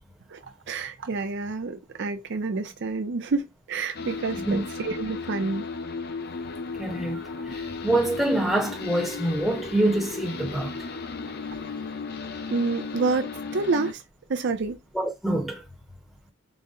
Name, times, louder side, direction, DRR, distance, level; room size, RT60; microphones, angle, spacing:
voice 1, 0.7-5.7 12.5-14.0 14.3-14.8, right 4 dB, 60° right, 0.5 m, -28 dB
sound 1, 3.9-13.9, left 4 dB, 50° left, 0.5 m, -35 dB
voice 2, 6.8-10.8 14.9-15.6, right 1 dB, ahead, 0.9 m, -26 dB
4.0 x 2.0 x 3.7 m
head